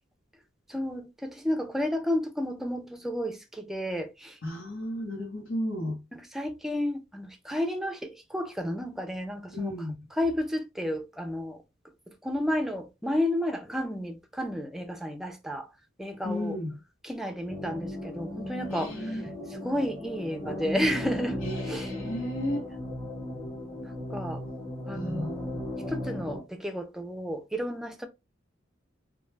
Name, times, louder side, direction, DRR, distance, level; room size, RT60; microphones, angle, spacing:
voice 1, 0.7-4.4 6.1-9.8 10.1-11.6 12.1-15.7 16.0-16.6 17.0-21.9 24.1-24.4 24.9-25.6 25.9-28.1, left 1 dB, ahead, 0.3 m, -32 dB
voice 2, 4.4-6.0 9.5-9.9 16.2-16.7 18.7-19.2 21.4-22.7 24.9-25.4, left 1 dB, 80° left, 1.0 m, -33 dB
sound 1, 17.5-26.4, left 1 dB, 15° left, 1.0 m, -36 dB
2.3 x 2.2 x 3.1 m
head